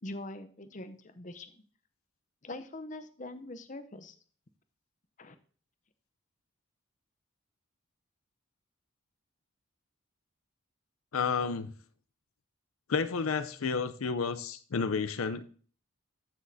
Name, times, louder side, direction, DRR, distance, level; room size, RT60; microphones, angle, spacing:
voice 1, 0.0-1.5 2.4-4.1 5.2-5.4, left 1 dB, 35° left, 10 dB, 0.6 m, -43 dB
voice 2, 11.1-11.7 12.9-15.4, left 5 dB, 85° left, 12 dB, 0.6 m, -31 dB
14.5 x 6.3 x 2.7 m, 0.43 s
head